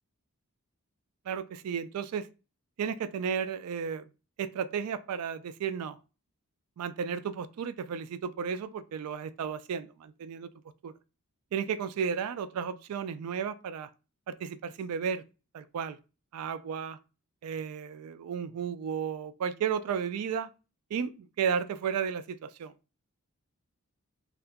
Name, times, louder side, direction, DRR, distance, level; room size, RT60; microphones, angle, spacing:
voice 1, 1.3-2.3 2.8-4.1 4.4-6.0 6.8-10.5 10.8-10.9 11.5-13.9 14.3-15.2 15.5-16.0 16.3-17.0 17.4-20.5 20.9-22.7, right 7 dB, 80° right, 0.3 m, -33 dB
2.7 x 2.4 x 3.4 m
head